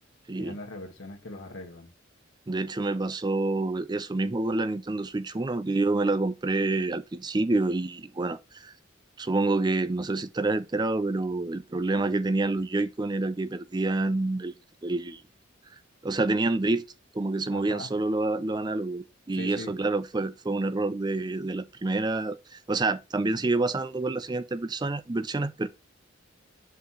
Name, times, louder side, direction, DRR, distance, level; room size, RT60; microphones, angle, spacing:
voice 1, 0.4-1.9 17.5-17.9 19.3-19.7, left 2 dB, 80° left, 1.7 m, -40 dB
voice 2, 2.5-8.7 9.2-15.2 16.0-16.8 17.1-25.7, right 2 dB, 20° right, 0.4 m, -28 dB
5.8 x 5.6 x 3.1 m
head